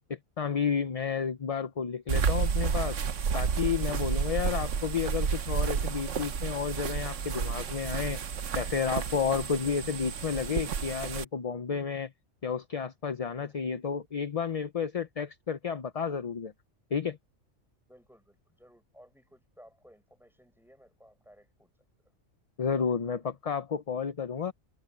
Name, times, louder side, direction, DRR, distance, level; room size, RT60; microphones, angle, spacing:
voice 1, 0.1-3.0 3.3-8.2 8.5-12.1 12.4-16.5 16.9-17.2 22.6-24.5, left 6 dB, 40° left, 0.6 m, -31 dB
sound 1, 2.1-11.2, right 6 dB, 75° right, 1.4 m, -31 dB
voice 2, 9.6-10.0 13.3-13.7 17.9-21.7, equal, ahead, 7.8 m, -58 dB
omnidirectional pair, 1.3 m